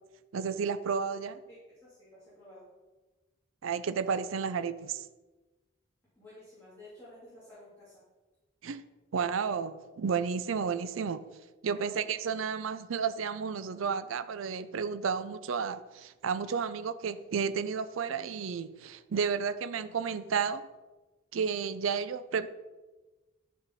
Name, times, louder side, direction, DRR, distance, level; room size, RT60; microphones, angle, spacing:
voice 1, 0.3-1.4 3.6-5.1 8.6-8.8 9.1-11.2 11.6-20.6 21.3-22.5, right 6 dB, 80° right, 13 dB, 0.5 m, -32 dB
voice 2, 1.8-2.7 6.1-8.0 11.7-12.2, left 2 dB, 15° left, -11 dB, 3.1 m, -52 dB
11.5 x 5.5 x 4.2 m, 1.2 s
head